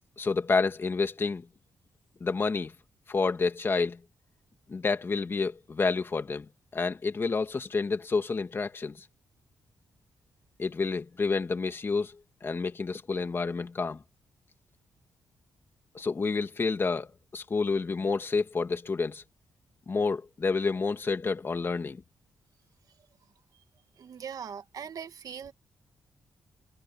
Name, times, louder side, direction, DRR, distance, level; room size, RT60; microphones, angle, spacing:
voice 1, 0.2-1.5 2.2-2.7 3.1-4.0 4.7-9.0 10.6-12.2 12.4-14.0 15.9-19.2 19.9-22.0, left 4 dB, 30° left, 2.2 m, -29 dB
voice 2, 24.0-25.5, right 7 dB, 55° right, 1.9 m, -40 dB
wide cardioid pair, 135°, 7 cm